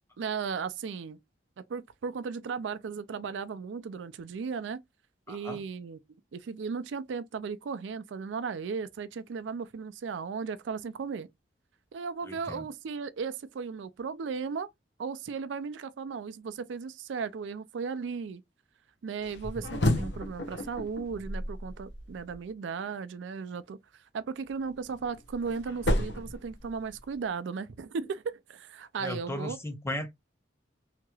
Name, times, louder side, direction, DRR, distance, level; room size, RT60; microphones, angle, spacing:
voice 1, 0.2-1.2 1.7-4.8 5.3-6.0 6.3-11.3 11.9-14.7 15.0-18.4 19.0-29.6, right 5 dB, 80° right, 0.4 m, -36 dB
voice 2, 5.3-5.6 12.3-12.7 29.0-30.1, left 1 dB, 15° left, 0.7 m, -36 dB
sound 1, 19.2-22.4 24.6-27.1, left 1 dB, 70° left, 0.7 m, -32 dB
3.0 x 2.8 x 2.3 m
head